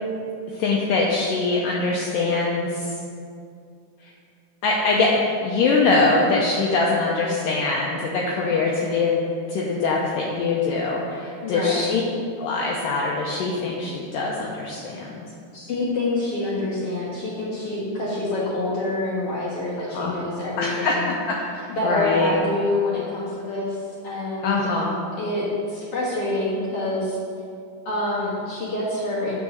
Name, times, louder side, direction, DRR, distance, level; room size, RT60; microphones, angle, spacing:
voice 1, 0.5-2.9 4.6-9.2 9.5-12.0 12.4-15.3 19.9-20.1 20.6-22.4 24.4-24.9, left 3 dB, 80° left, -3 dB, 2.0 m, -23 dB
voice 2, 11.4-11.9 15.5-21.1 21.7-23.8 24.0-24.6 25.2-27.2 27.8-29.4, left 2 dB, 65° left, -6 dB, 1.5 m, -26 dB
8.3 x 5.3 x 6.3 m, 2.4 s
omnidirectional pair, 4.7 m